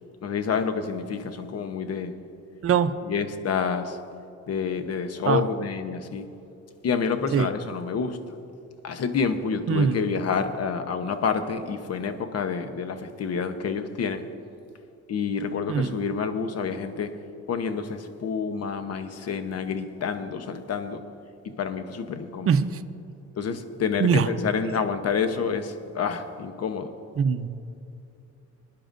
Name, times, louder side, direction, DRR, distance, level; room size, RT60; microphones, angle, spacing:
voice 1, 0.2-2.1 3.0-4.0 4.5-6.3 6.8-8.2 8.8-14.3 15.1-17.1 17.5-21.0 21.4-22.5 23.4-26.9, left 6 dB, 55° left, 9 dB, 0.9 m, -28 dB
voice 2, 2.6-3.0 5.3-5.4 7.3-7.5 9.7-10.0 15.7-15.9 22.5-22.8 24.0-24.3 27.2-27.5, right 7 dB, 50° right, 10 dB, 0.7 m, -22 dB
20.0 x 10.5 x 2.6 m, 2.7 s
cardioid pair, 90°, 30 cm